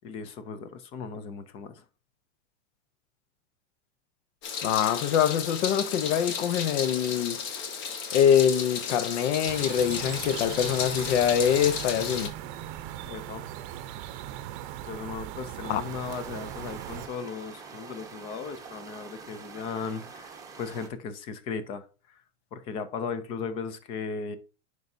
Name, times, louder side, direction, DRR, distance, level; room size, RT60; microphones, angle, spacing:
voice 1, 0.0-1.8 13.1-13.5 14.8-22.2 22.5-24.4, left 5 dB, 15° left, 0.3 m, -37 dB
Meow, 4.4-12.3, left 6 dB, 30° left, 1.1 m, -34 dB
voice 2, 4.6-7.4 8.1-12.3 15.7-15.8, left 9 dB, 65° left, 0.8 m, -24 dB
sound 1, 9.4-17.1, right 12 dB, 45° right, 0.7 m, -39 dB
sound 2, 15.7-20.9, right 5 dB, 10° right, 0.9 m, -46 dB
9.3 x 4.8 x 2.6 m
supercardioid pair, 155°, 37 cm